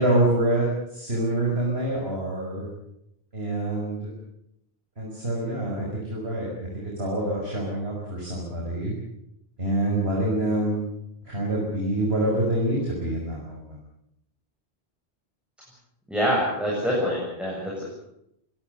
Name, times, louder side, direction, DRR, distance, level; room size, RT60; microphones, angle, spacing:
voice 1, 0.0-2.7 3.3-4.1 5.0-8.9 9.6-10.8 11.2-13.8, right 1 dB, 70° right, -3 dB, 6.1 m, -26 dB
voice 2, 16.1-17.8, equal, ahead, -5 dB, 7.8 m, -25 dB
23.0 x 18.5 x 8.2 m, 0.79 s
omnidirectional pair, 1.1 m